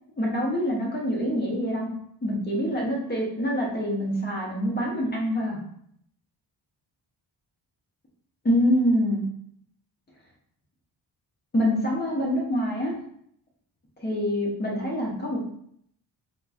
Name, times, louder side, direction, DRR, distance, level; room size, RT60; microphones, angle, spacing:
voice 1, 0.2-1.9 2.2-5.6 8.4-9.2 11.5-12.9 14.0-15.5, equal, 25° left, -3 dB, 0.7 m, -25 dB
4.0 x 2.0 x 2.4 m, 0.68 s
wide cardioid pair, 170°, 44 cm